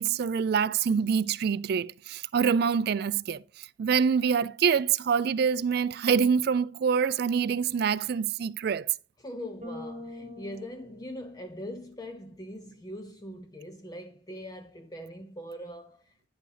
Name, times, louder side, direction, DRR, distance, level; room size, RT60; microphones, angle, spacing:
voice 1, 0.0-8.9, right 6 dB, 50° right, 0.3 m, -26 dB
voice 2, 9.2-16.1, equal, 20° left, 0.5 m, -41 dB
Bass guitar, 9.6-11.9, left 2 dB, 30° right, 1.2 m, -44 dB
9.6 x 6.9 x 3.2 m
head